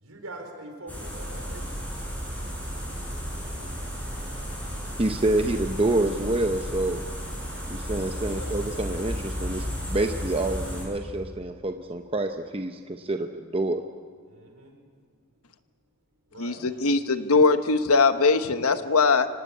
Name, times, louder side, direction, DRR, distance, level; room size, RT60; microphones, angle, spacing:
voice 1, 0.0-1.6 1.9-2.0 8.3-8.5 14.3-14.7 16.3-16.6, right 1 dB, 65° right, 4 dB, 4.7 m, -43 dB
Forest daytime birds light wind very distant air traffic, 0.9-10.9, equal, 5° left, 7.0 m, -33 dB
voice 2, 5.0-7.0 7.7-13.8, right 2 dB, 25° right, 6 dB, 0.7 m, -27 dB
voice 3, 16.4-19.3, left 4 dB, 70° left, 10 dB, 1.2 m, -21 dB
25.5 x 18.0 x 8.5 m, 2.1 s
head